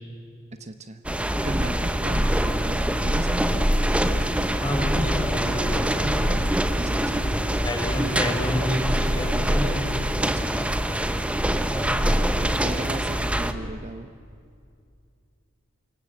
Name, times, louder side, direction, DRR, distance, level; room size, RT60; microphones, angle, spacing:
voice 1, 0.6-1.0 1.4-3.6 6.8-7.3 10.2-10.8 12.0-12.1 12.4-14.1, right 2 dB, 35° right, 9 dB, 0.8 m, -37 dB
sound 1, 1.0-13.5, equal, 5° right, 1.0 m, -24 dB
sound 2, 3.0-13.0, right 2 dB, 70° right, 2.8 m, -46 dB
voice 2, 4.5-6.3 7.6-9.8 11.7-12.1, equal, 20° left, 0 dB, 5.9 m, -29 dB
28.0 x 24.5 x 7.6 m, 2.3 s
head